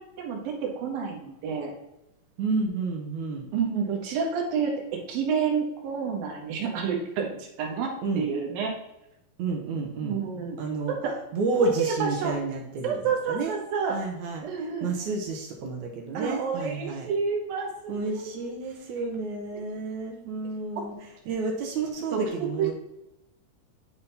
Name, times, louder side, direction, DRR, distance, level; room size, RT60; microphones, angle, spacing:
voice 1, 0.0-1.7 3.5-8.7 10.0-10.6 11.0-11.1 11.6-12.3 12.8-14.0 14.4-14.9 16.1-18.5 22.1-22.2 22.6-22.7, right 6 dB, 90° right, 0 dB, 3.2 m, -29 dB
voice 2, 2.4-3.5 8.0-8.2 9.4-10.2 10.6-11.0 11.3-13.0 13.3-13.5 13.9-14.5 14.8-17.1 17.9-21.0 21.3-22.7, right 3 dB, 65° right, 1 dB, 2.1 m, -30 dB
10.5 x 3.7 x 4.1 m, 0.89 s
omnidirectional pair, 4.1 m